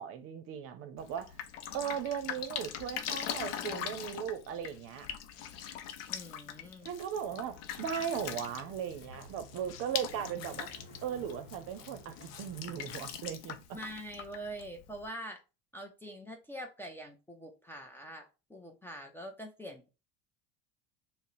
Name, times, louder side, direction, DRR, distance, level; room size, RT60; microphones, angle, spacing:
voice 1, 0.0-1.3 1.7-5.1 6.8-10.7 11.0-13.6, right 8 dB, 50° right, 0.6 m, -37 dB
Drip, 1.0-15.1, left 9 dB, 80° left, 0.6 m, -42 dB
voice 2, 6.1-6.9 13.7-15.4 15.7-19.9, right 1 dB, 10° left, 0.4 m, -44 dB
sound 1, 7.2-13.0, equal, 35° left, 1.3 m, -54 dB
2.7 x 2.1 x 3.9 m
supercardioid pair, 115°, 29 cm